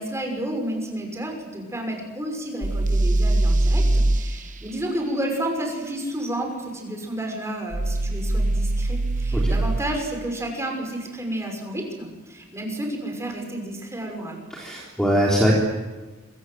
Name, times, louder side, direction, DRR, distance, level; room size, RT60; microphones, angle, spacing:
voice 1, 0.0-14.4, right 1 dB, 15° right, 2 dB, 6.0 m, -31 dB
sound 1, 2.6-4.2 7.7-9.8, right 2 dB, 35° right, 0.9 m, -21 dB
voice 2, 14.5-15.5, equal, 5° left, -3 dB, 3.7 m, -21 dB
26.5 x 24.5 x 7.9 m, 1.2 s
head